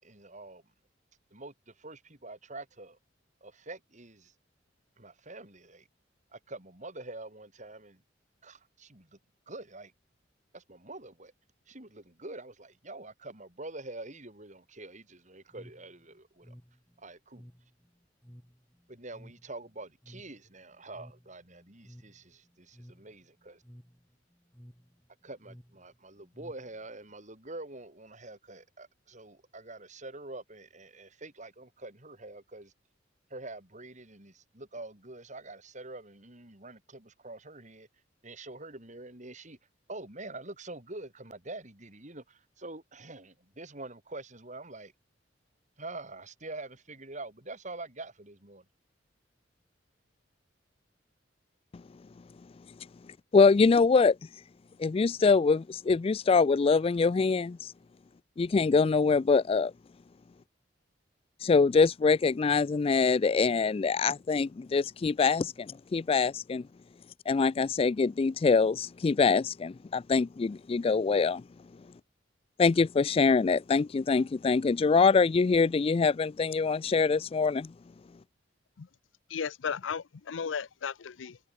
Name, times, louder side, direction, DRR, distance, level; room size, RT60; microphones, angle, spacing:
voice 1, 0.0-0.6 1.3-3.0 3.4-4.3 5.0-5.9 6.3-8.0 8.4-9.2 9.5-9.9 10.5-11.3 11.7-16.6 17.0-17.5 18.9-23.6 25.2-32.7 33.3-37.9 38.2-39.6 39.9-44.9 45.8-48.6, right 2 dB, 40° right, 5.8 m, -45 dB
sound 1, 15.5-27.1, equal, 10° left, 5.0 m, -55 dB
voice 2, 53.3-54.2 54.8-57.7 58.4-59.7 61.4-66.6 67.3-71.4 72.6-77.7, left 4 dB, 30° left, 0.3 m, -24 dB
voice 3, 79.3-81.4, left 6 dB, 80° left, 0.5 m, -35 dB
head